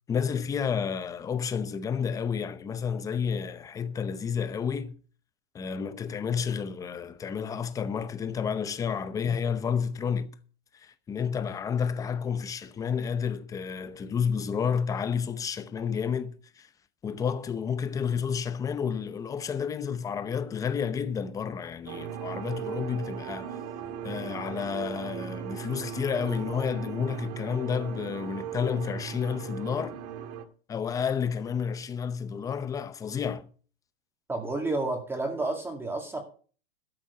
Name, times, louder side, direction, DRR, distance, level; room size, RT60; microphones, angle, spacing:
voice 1, 0.1-5.0 5.5-10.4 10.8-16.7 17.0-23.6 24.0-30.0 30.7-33.5, left 7 dB, 10° left, 0.7 m, -30 dB
sound 1, 21.9-30.4, right 8 dB, 40° right, 1.7 m, -38 dB
voice 2, 34.3-36.2, right 2 dB, 5° right, 2.1 m, -30 dB
13.0 x 7.4 x 6.7 m
hypercardioid pair, 150°, 31 cm